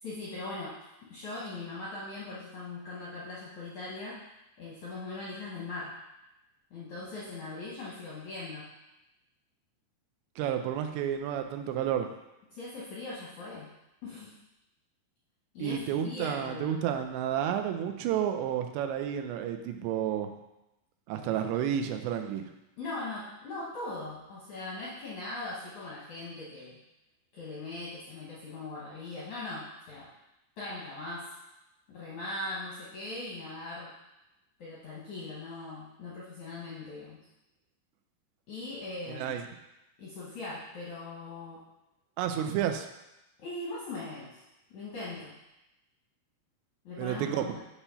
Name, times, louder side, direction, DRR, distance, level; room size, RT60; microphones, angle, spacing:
voice 1, 0.0-4.2 4.6-6.0 6.7-8.7 12.5-13.7 14.0-14.3 15.5-16.8 22.8-26.8 27.3-30.1 30.6-31.3 31.9-33.9 34.6-37.3 38.5-39.3 40.0-41.6 43.4-44.4 44.7-45.3 46.8-47.6, left 2 dB, 75° left, -6 dB, 1.7 m, -40 dB
voice 2, 10.4-12.1 15.6-20.3 21.1-22.5 39.1-39.4 42.2-42.9 47.0-47.5, right 9 dB, 90° right, 6 dB, 2.8 m, -31 dB
8.5 x 3.0 x 5.5 m, 0.93 s
omnidirectional pair, 4.9 m